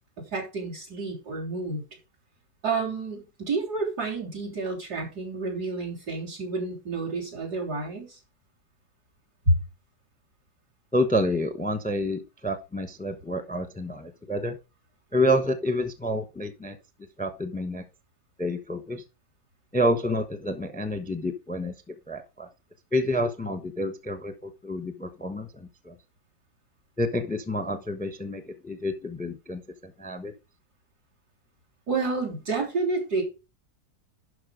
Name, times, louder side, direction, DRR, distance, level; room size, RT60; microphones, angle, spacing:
voice 1, 0.2-1.8 2.6-8.2 9.5-9.6 31.9-33.2, right 3 dB, 65° right, -2 dB, 4.0 m, -29 dB
voice 2, 10.9-14.5 15.1-16.8 17.2-17.8 18.4-19.0 19.7-21.7 22.1-22.5 22.9-25.9 27.0-30.3, equal, 5° left, 9 dB, 0.7 m, -28 dB
11.5 x 4.9 x 5.0 m, 0.28 s
omnidirectional pair, 1.8 m